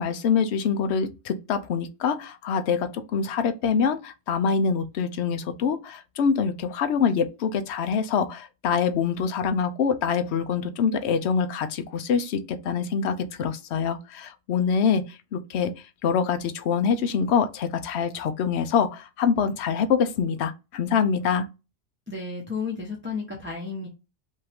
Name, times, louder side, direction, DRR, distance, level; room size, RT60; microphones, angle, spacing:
voice 1, 0.0-15.7 16.0-21.5, left 6 dB, 65° left, 0.8 m, -25 dB
voice 2, 22.1-23.9, left 4 dB, 10° right, 0.8 m, -32 dB
5.4 x 2.5 x 3.5 m
omnidirectional pair, 1.3 m